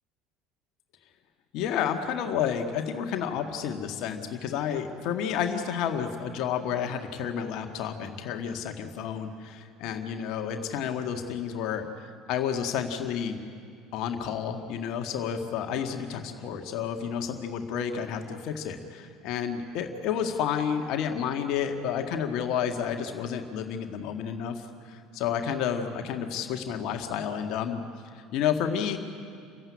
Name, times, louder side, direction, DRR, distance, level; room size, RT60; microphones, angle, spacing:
voice 1, 1.5-13.4 13.9-27.8 28.1-29.0, left 8 dB, 55° left, 5 dB, 1.9 m, -30 dB
28.0 x 15.5 x 9.9 m, 2.3 s
figure-of-eight pair, 65°, 0 cm